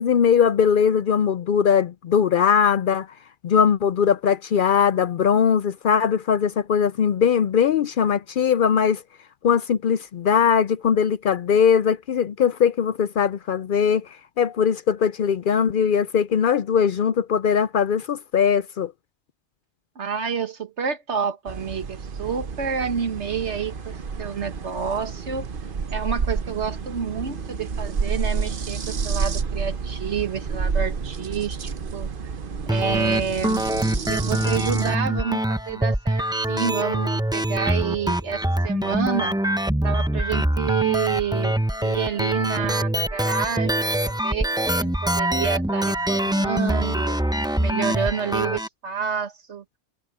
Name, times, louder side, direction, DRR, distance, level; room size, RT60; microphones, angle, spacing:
voice 1, 0.0-3.1 3.4-9.0 9.4-14.1 14.4-18.9, left 7 dB, 60° left, 0.6 m, -20 dB
voice 2, 20.0-25.5 25.9-32.1 32.7-33.6 34.1-39.3 39.8-41.6 41.8-47.2 47.6-49.6, right 7 dB, 80° right, 1.8 m, -29 dB
sound 1, 21.5-35.0, right 5 dB, 50° right, 1.1 m, -30 dB
sound 2, 32.7-48.7, right 1 dB, 5° right, 0.7 m, -24 dB
omnidirectional pair, 1.1 m